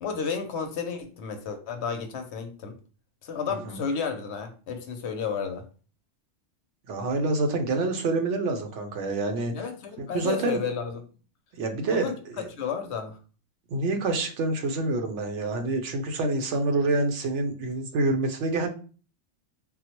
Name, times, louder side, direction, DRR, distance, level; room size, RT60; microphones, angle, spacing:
voice 1, 0.0-2.8 3.2-5.7 9.5-11.0 11.9-13.2, left 6 dB, 70° left, 0.8 m, -32 dB
voice 2, 6.9-9.5 10.0-10.6 11.6-12.5 13.7-18.7, right 2 dB, 75° right, 1.0 m, -27 dB
3.8 x 2.1 x 2.8 m
omnidirectional pair, 1.2 m